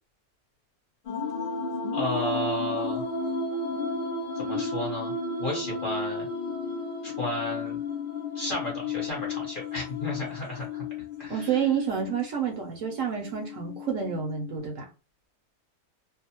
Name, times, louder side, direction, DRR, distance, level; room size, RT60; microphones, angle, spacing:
sound 1, 1.1-14.6, left 3 dB, 85° left, 0.4 m, -33 dB
voice 1, 1.9-3.1 4.3-5.1 5.4-6.3 7.0-7.8 8.3-10.8 11.2-11.6, left 2 dB, 40° left, 0.9 m, -33 dB
voice 2, 11.3-14.9, right 8 dB, 65° right, 0.9 m, -29 dB
2.6 x 2.0 x 2.8 m
omnidirectional pair, 1.6 m